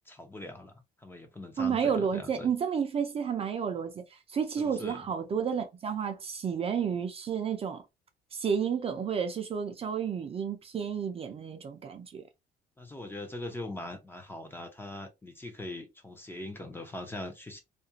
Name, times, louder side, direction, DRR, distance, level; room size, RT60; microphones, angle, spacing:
voice 1, 0.1-0.7 1.0-2.5 4.6-5.0 12.8-17.6, left 2 dB, 10° left, 0.6 m, -41 dB
voice 2, 1.6-7.8 8.3-12.2, right 7 dB, 35° right, 0.5 m, -31 dB
2.5 x 2.2 x 2.8 m
cardioid pair, 110°, 17 cm